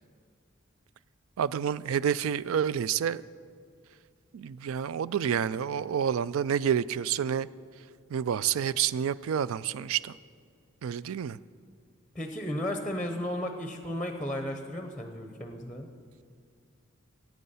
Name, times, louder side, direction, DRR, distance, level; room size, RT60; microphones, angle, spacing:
voice 1, 1.4-3.2 4.3-7.5 8.1-10.2 10.8-11.4, right 8 dB, 85° right, 18 dB, 0.3 m, -29 dB
voice 2, 12.1-15.9, left 1 dB, 5° left, 6 dB, 0.7 m, -34 dB
15.0 x 9.3 x 5.6 m, 2.1 s
head